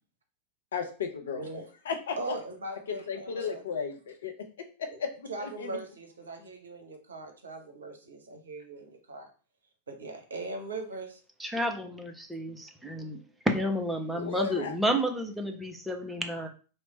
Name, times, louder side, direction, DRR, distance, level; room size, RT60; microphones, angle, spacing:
voice 1, 0.7-1.5 1.9-2.2 2.9-5.8 14.1-14.7, left 6 dB, 65° left, 5 dB, 0.5 m, -35 dB
voice 2, 2.2-3.6 4.9-5.0 5.3-9.3 9.9-11.2, right 2 dB, 70° right, 4 dB, 0.7 m, -40 dB
voice 3, 11.4-13.2 13.5-16.5, equal, 5° right, 4 dB, 0.5 m, -31 dB
3.1 x 2.1 x 3.9 m, 0.37 s
figure-of-eight pair, 90°, 0 cm